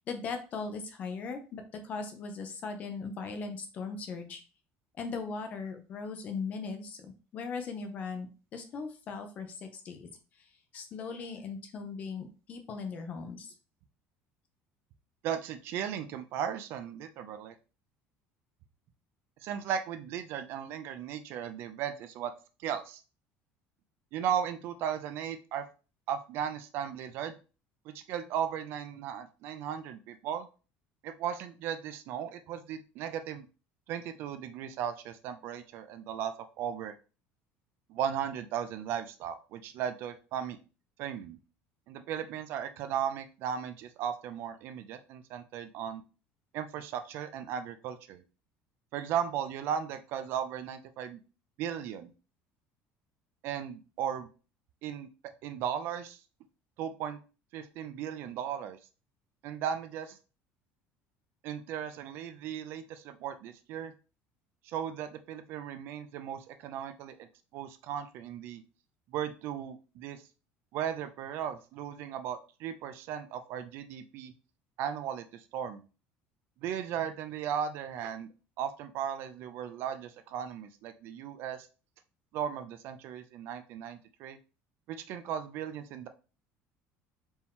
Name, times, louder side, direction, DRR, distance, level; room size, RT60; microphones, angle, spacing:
voice 1, 0.1-4.4 5.0-8.3 8.5-10.1 10.4-10.5 10.7-13.5, left 4 dB, 30° left, 6 dB, 0.7 m, -39 dB
voice 2, 15.2-17.5 19.4-22.3 22.6-23.0 24.1-25.7 26.1-27.3 27.9-30.5 31.0-33.5 33.9-36.9 37.9-40.6 41.0-41.4 41.9-46.0 46.5-48.2 48.9-51.2 51.6-52.1 53.4-54.3 54.8-55.1 55.4-56.2 56.8-57.2 57.5-58.8 59.4-60.2 61.4-63.9 64.7-67.3 67.5-68.6 69.1-70.2 70.7-74.3 74.8-75.8 76.6-78.3 78.6-81.7 82.3-84.4 84.9-86.1, right 9 dB, 50° right, 10 dB, 0.4 m, -36 dB
4.4 x 2.9 x 3.6 m, 0.34 s
cardioid pair, 175°, 5 cm